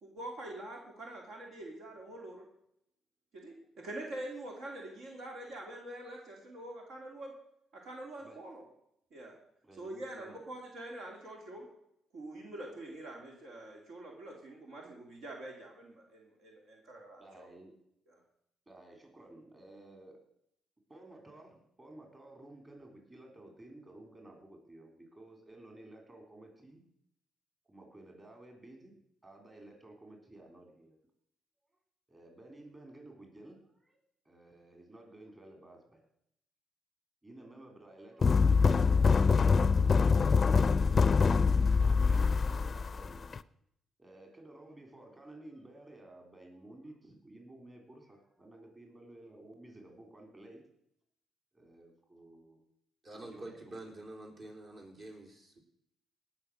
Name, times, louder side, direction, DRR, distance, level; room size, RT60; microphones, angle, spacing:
voice 1, 0.0-2.4 3.3-7.3 7.7-8.6 9.1-9.3 9.8-11.7 12.1-17.5 18.1-18.2, right 1 dB, 75° right, 0 dB, 2.7 m, -45 dB
voice 2, 9.6-10.4 17.2-17.7 18.7-20.2 20.9-26.9 27.7-30.9 32.1-34.0 34.2-36.0 37.2-40.8 41.8-43.4 44.0-50.6 51.5-52.6 53.1-53.8, right 1 dB, 25° right, 2 dB, 3.7 m, -54 dB
sound 1, 38.2-43.4, left 5 dB, 35° left, 0.4 m, -24 dB
voice 3, 53.0-55.6, right 2 dB, 50° right, 1 dB, 3.9 m, -47 dB
17.5 x 6.1 x 6.4 m, 0.76 s
cardioid pair, 90°, 0 cm